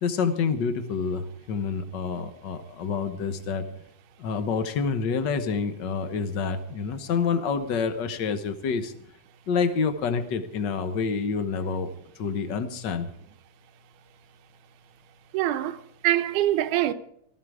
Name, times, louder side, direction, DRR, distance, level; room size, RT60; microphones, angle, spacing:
voice 1, 0.0-3.7 4.2-8.9 9.5-11.9 12.2-13.1, left 5 dB, 65° left, 1.1 m, -28 dB
voice 2, 15.3-16.9, right 13 dB, 90° right, 2.3 m, -24 dB
18.0 x 14.0 x 4.9 m
omnidirectional pair, 3.5 m